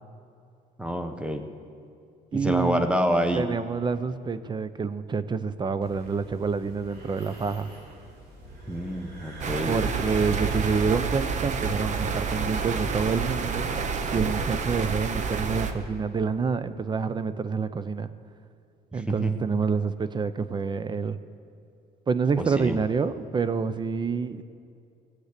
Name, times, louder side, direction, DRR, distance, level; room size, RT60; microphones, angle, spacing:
voice 1, 0.8-1.4 2.3-3.4 8.7-9.8 18.9-19.3 22.4-22.8, equal, 5° right, 7 dB, 1.1 m, -27 dB
voice 2, 2.3-2.9 3.3-7.7 9.7-13.7 14.1-18.1 18.9-21.2 22.1-24.4, right 5 dB, 25° right, 13 dB, 0.6 m, -27 dB
sound 1, 5.8-13.9, right 1 dB, 80° right, 3.0 m, -44 dB
sound 2, 9.4-15.7, right 5 dB, 45° right, 1.0 m, -29 dB
18.5 x 8.0 x 6.7 m, 2.5 s
cardioid pair, 110°, 17 cm